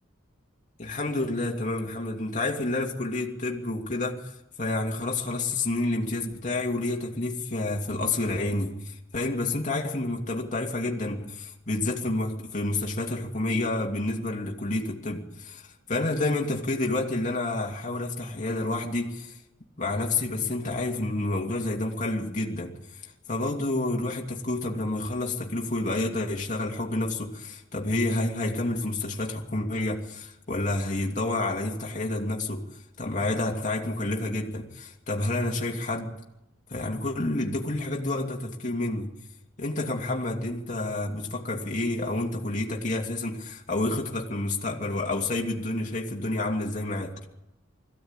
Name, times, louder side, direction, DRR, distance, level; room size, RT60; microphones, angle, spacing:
voice 1, 0.8-4.3 4.6-19.4 19.8-36.1 36.7-39.1 39.6-47.1, left 2 dB, 35° left, 2.6 m, -29 dB
22.0 x 15.5 x 9.0 m
head